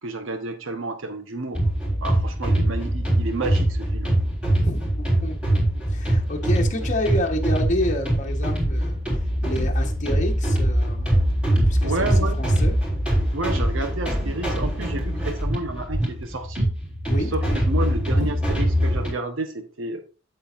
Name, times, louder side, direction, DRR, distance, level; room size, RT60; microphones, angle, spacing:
voice 1, 0.0-1.6 2.0-4.1 11.8-12.4 13.3-16.7 17.3-20.0, right 2 dB, 75° right, 7 dB, 1.0 m, -30 dB
sound 1, 1.5-19.1, right 1 dB, 5° right, 4.2 m, -23 dB
voice 2, 4.6-5.6 5.9-9.0 9.4-11.2 11.7-12.1 12.4-12.7 17.1-17.3 18.2-18.4, left 1 dB, 40° left, 2 dB, 1.2 m, -29 dB
8.7 x 7.7 x 2.6 m, 0.34 s
head